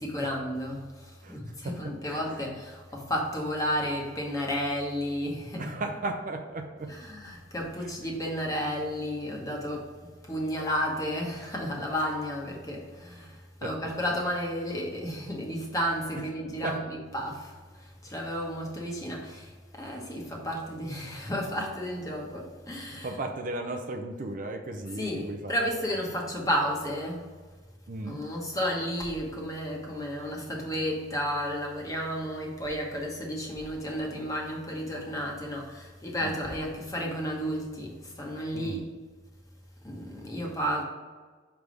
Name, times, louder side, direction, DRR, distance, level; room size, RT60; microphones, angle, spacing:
voice 1, 0.0-5.7 6.9-23.2 25.0-27.3 28.0-38.8 39.8-40.8, equal, 15° left, -1 dB, 1.0 m, -32 dB
voice 2, 1.6-2.2 5.6-6.9 7.8-7.9 13.6-13.7 16.6-16.8 22.9-25.6 27.9-28.2 36.2-36.3 38.5-38.9 40.4-40.5, right 2 dB, 40° right, 4 dB, 0.5 m, -35 dB
6.2 x 3.4 x 5.1 m, 1.4 s
head